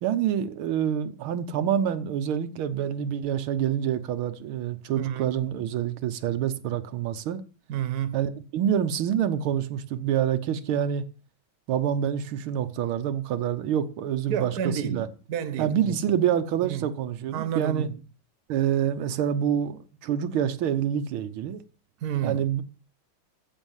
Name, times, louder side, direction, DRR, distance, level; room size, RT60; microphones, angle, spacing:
voice 1, 0.0-7.4 8.1-11.0 11.7-15.1 15.6-17.9 18.5-21.6 22.2-22.6, right 9 dB, 85° right, 1.7 m, -27 dB
voice 2, 5.0-5.3 7.7-8.2 14.3-16.0 16.6-16.9 17.3-18.0 22.0-22.6, right 8 dB, 55° right, 1.5 m, -30 dB
14.5 x 6.3 x 7.3 m
omnidirectional pair, 2.3 m